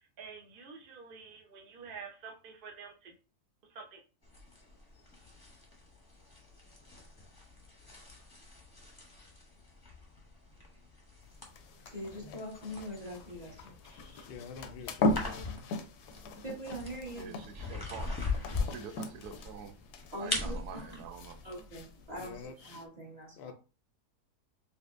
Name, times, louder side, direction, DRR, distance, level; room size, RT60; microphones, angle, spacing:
voice 1, 0.0-3.2 3.6-4.0, right 5 dB, 50° right, 0.7 m, -48 dB
sound 1, 4.2-22.5, left 3 dB, 20° left, 0.7 m, -42 dB
sound 2, 11.2-22.8, left 2 dB, 85° left, 1.2 m, -39 dB
voice 2, 11.9-14.3 16.4-17.3 20.1-21.0 21.4-23.5, equal, 25° right, 1.3 m, -43 dB
voice 3, 14.3-15.5 22.2-22.5 23.4-23.5, left 6 dB, 70° left, 0.6 m, -46 dB
voice 4, 17.2-18.1 18.6-19.8 20.2-21.4, right 7 dB, 75° right, 1.1 m, -46 dB
4.2 x 3.3 x 2.5 m
omnidirectional pair, 1.7 m